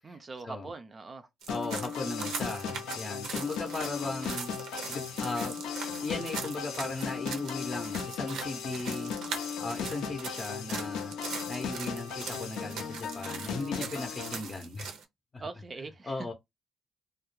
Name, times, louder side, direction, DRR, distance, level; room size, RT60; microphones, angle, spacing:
voice 1, 0.0-1.3 15.4-16.3, right 3 dB, 35° right, 0.3 m, -42 dB
sound 1, 1.4-15.0, right 6 dB, 85° right, 0.5 m, -41 dB
sound 2, 1.5-14.4, left 6 dB, 90° left, 0.5 m, -37 dB
voice 2, 1.5-4.5 4.9-5.6 6.0-9.1 9.6-11.1 11.5-14.9 15.3-15.4 16.0-16.3, left 3 dB, 35° left, 0.5 m, -37 dB
2.2 x 2.1 x 3.0 m
cardioid pair, 90°, 0 cm